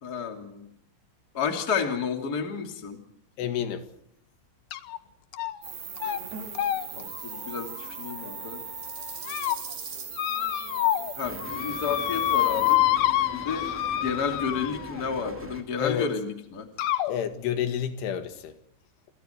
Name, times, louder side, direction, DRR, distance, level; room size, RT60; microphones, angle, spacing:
voice 1, 0.0-0.7 1.3-3.0 6.9-8.6 11.2-12.8 13.3-13.7 14.0-16.7, left 6 dB, 25° left, 4 dB, 2.5 m, -31 dB
voice 2, 3.4-3.9 15.8-16.1 17.1-18.6, left 9 dB, 90° left, 8 dB, 4.4 m, -29 dB
sound 1, 4.7-5.0 5.3-5.7 6.0-6.2 6.5-8.5 9.0-9.6 10.1-11.1 11.4-15.0 16.0-16.1 16.8-17.1, left 13 dB, 70° left, 2.3 m, -27 dB
sound 2, 5.6-12.8, right 6 dB, 55° right, 6.1 m, -39 dB
sound 3, 11.2-15.6, equal, 10° right, 0.7 m, -42 dB
28.5 x 27.0 x 4.5 m, 0.73 s
omnidirectional pair, 5.4 m